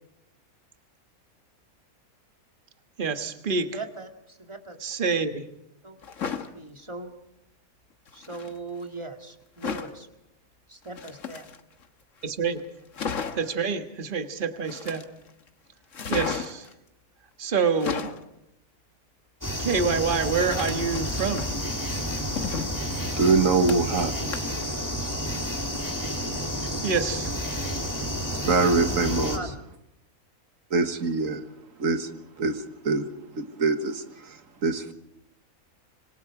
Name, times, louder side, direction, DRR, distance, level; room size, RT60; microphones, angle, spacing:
voice 1, 3.0-3.8 4.8-5.4 12.2-12.6 13.4-15.1 16.1-16.7 17.4-18.1 19.6-21.5 26.8-27.3, right 5 dB, 35° right, 1.6 m, -27 dB
voice 2, 3.7-4.8 5.8-6.0 6.3-7.2 8.1-10.1 10.7-11.5 29.1-29.6, right 2 dB, 20° right, 2.1 m, -39 dB
sound 1, 6.0-6.5 8.1-8.5 9.6-10.0 10.9-11.8 12.2-12.3 12.6-12.7 12.9-13.5 14.6-15.3 15.9-16.7 17.6-18.2 20.4-21.6 22.1-24.0 24.3-24.7 25.0-25.1, left 6 dB, 60° left, 1.6 m, -34 dB
sound 2, 19.4-29.4, equal, 10° left, 2.7 m, -30 dB
voice 3, 23.2-24.2 28.4-29.4 30.7-31.4 31.8-33.1 33.3-34.9, right 4 dB, 65° right, 1.8 m, -24 dB
26.5 x 24.5 x 4.9 m
omnidirectional pair, 1.5 m